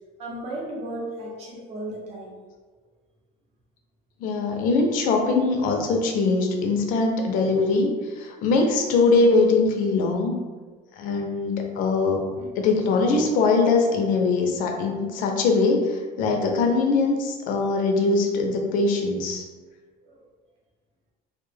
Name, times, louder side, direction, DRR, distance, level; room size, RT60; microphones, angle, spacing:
voice 1, 0.2-2.4 12.3-12.5 13.0-13.2 20.1-20.2, right 1 dB, 40° right, -3 dB, 0.6 m, -35 dB
voice 2, 4.2-7.9 8.2-10.4 11.0-12.2 12.6-19.5, left 3 dB, 60° left, 2 dB, 0.4 m, -22 dB
2.1 x 2.0 x 3.2 m, 1.4 s
cardioid pair, 160°, 16 cm